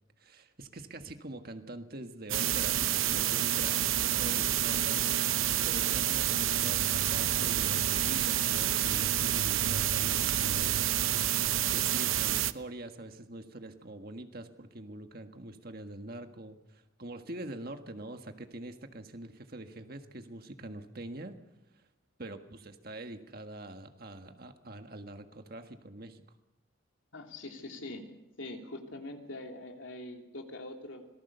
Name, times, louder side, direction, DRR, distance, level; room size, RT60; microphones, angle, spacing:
voice 1, 0.2-10.8 11.7-21.4 21.7-21.9 22.2-26.2, right 2 dB, 45° right, 7 dB, 1.6 m, -44 dB
sound 1, 2.3-12.5, right 11 dB, 75° right, 0.8 m, -28 dB
voice 2, 27.1-28.0 28.4-31.1, left 2 dB, 65° left, 3 dB, 3.1 m, -43 dB
26.0 x 19.0 x 6.8 m, 0.94 s
head